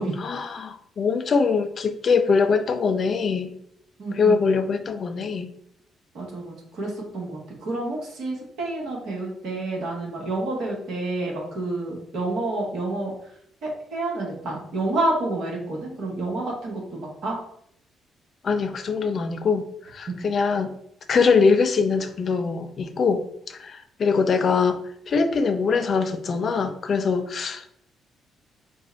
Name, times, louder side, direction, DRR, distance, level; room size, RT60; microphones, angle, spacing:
voice 1, 0.2-3.5 4.2-5.5 18.4-20.7 21.1-24.8 25.1-27.7, left 5 dB, 45° left, 8 dB, 0.4 m, -23 dB
voice 2, 4.0-4.4 6.1-13.1 13.6-17.4 20.1-20.2, right 2 dB, 60° right, -1 dB, 1.3 m, -29 dB
4.4 x 2.2 x 4.1 m, 0.69 s
figure-of-eight pair, 40°, 0 cm